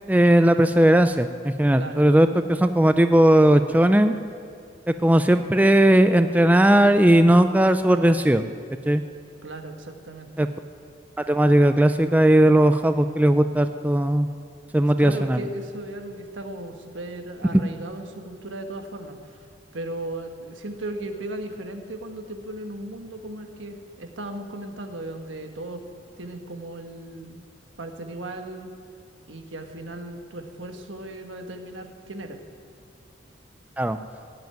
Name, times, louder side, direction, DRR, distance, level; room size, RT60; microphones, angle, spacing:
voice 1, 0.1-4.1 5.0-8.4 8.9-9.0 10.4-10.5 11.3-14.3 14.7-15.4 33.8-34.0, right 1 dB, 10° right, 9 dB, 0.3 m, -17 dB
voice 2, 1.7-2.1 9.4-10.5 15.0-19.5 19.7-25.8 26.2-27.4 27.8-28.7 29.3-32.4, right 1 dB, 90° right, 5 dB, 1.4 m, -36 dB
17.0 x 8.0 x 9.2 m, 2.4 s
head